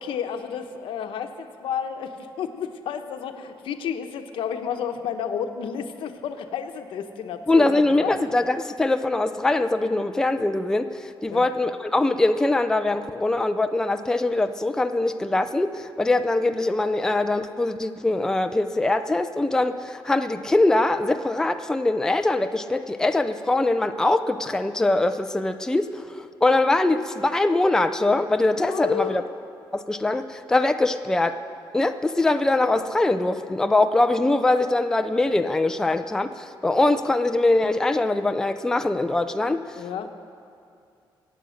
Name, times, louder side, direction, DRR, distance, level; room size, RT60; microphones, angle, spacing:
voice 1, 0.0-8.1 11.3-11.5 28.5-29.3 39.8-40.1, left 8 dB, 90° left, 6 dB, 1.0 m, -31 dB
voice 2, 7.5-10.9 11.2-29.2 29.7-31.4 31.7-39.6, left 2 dB, 5° left, 7 dB, 0.4 m, -22 dB
23.5 x 8.8 x 6.4 m, 2.4 s
wide cardioid pair, 165°, 9 cm